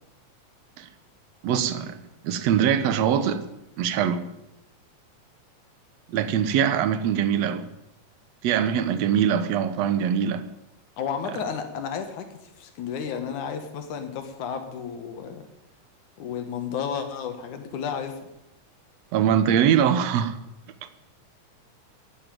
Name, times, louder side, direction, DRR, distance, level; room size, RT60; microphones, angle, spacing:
voice 1, 1.4-2.0 2.2-3.4 3.8-4.2 6.1-7.7 8.4-10.4 19.1-20.4, right 8 dB, 65° right, 1.9 m, -22 dB
voice 2, 11.0-15.5 16.2-18.1, left 7 dB, 75° left, 2.8 m, -32 dB
12.0 x 8.0 x 9.1 m
omnidirectional pair, 3.6 m